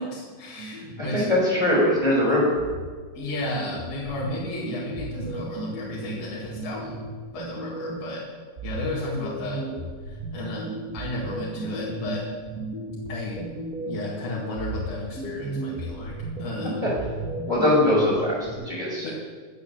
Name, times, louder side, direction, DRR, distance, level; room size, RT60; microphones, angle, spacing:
voice 1, 0.0-1.3 3.2-7.0 7.3-8.2 8.6-9.6 10.0-10.6 10.9-12.2 13.1-13.5 13.9-16.1 16.4-16.9 19.0-19.1, left 2 dB, 90° left, -5 dB, 3.7 m, -33 dB
sound 1, 0.6-2.1 2.6-8.2 8.6-14.2 14.6-18.5, right 2 dB, 30° right, 2.2 m, -35 dB
voice 2, 1.0-2.6 17.4-19.1, left 1 dB, 15° left, -9 dB, 4.5 m, -22 dB
18.5 x 7.1 x 7.2 m, 1.5 s
omnidirectional pair, 3.5 m